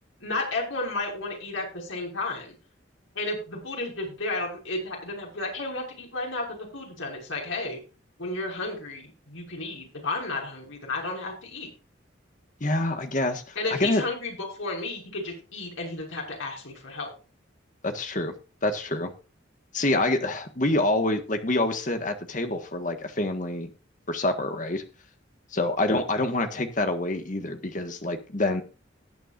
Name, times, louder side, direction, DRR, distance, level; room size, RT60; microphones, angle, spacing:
voice 1, 0.2-2.5 3.1-7.8 8.2-11.7 13.6-17.1, left 2 dB, 85° left, -1 dB, 6.1 m, -32 dB
voice 2, 12.6-14.0 17.8-18.3 18.6-19.1 19.7-23.7 24.1-24.8 25.5-28.6, left 2 dB, 40° left, 6 dB, 1.6 m, -26 dB
18.0 x 9.0 x 2.6 m, 0.33 s
head